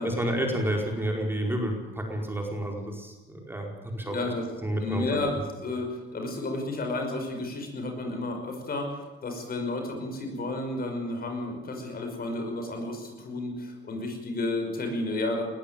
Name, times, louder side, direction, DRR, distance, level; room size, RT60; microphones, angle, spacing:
voice 1, 0.0-3.7 3.9-4.3 4.6-5.4, right 1 dB, 10° right, 1 dB, 4.8 m, -30 dB
voice 2, 4.0-4.5 4.8-5.3 5.6-15.4, left 2 dB, 50° left, 3 dB, 5.8 m, -32 dB
20.0 x 14.5 x 9.2 m, 1.1 s
cardioid pair, 90°, 20 cm